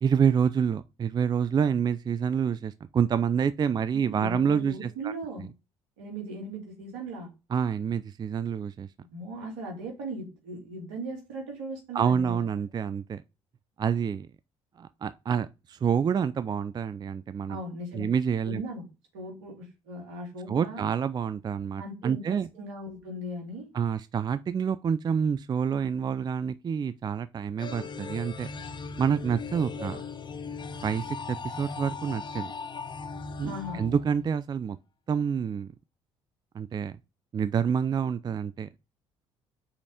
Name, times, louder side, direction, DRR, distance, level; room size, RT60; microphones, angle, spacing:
voice 1, 0.0-5.1 7.5-8.9 11.9-13.2 13.8-14.3 14.8-17.6 17.9-18.6 20.5-22.5 23.7-28.5 29.0-30.0 30.8-32.5 33.4-34.8 35.1-35.7 36.5-37.0 37.3-38.7, right 7 dB, 30° right, 0.4 m, -27 dB
voice 2, 4.1-5.5 6.0-7.3 9.1-12.4 17.5-18.1 18.4-18.8 19.1-20.8 21.8-23.7 29.8-29.9 33.4-33.9, right 1 dB, 75° right, 2.7 m, -38 dB
sound 1, 27.6-34.6, left 5 dB, 30° left, 1.0 m, -38 dB
5.6 x 4.2 x 4.9 m
hypercardioid pair, 55°, 15 cm